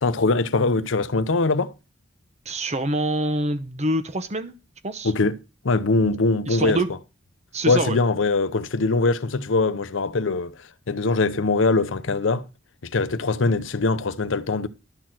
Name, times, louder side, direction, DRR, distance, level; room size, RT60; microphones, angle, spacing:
voice 1, 0.0-1.7 5.0-5.4 5.6-6.8 7.7-12.4 12.8-14.7, left 3 dB, 75° left, 0.7 m, -22 dB
voice 2, 2.5-4.5 4.8-5.1 6.5-6.9 7.5-8.0, right 1 dB, 35° right, 0.9 m, -25 dB
11.5 x 4.4 x 7.5 m
head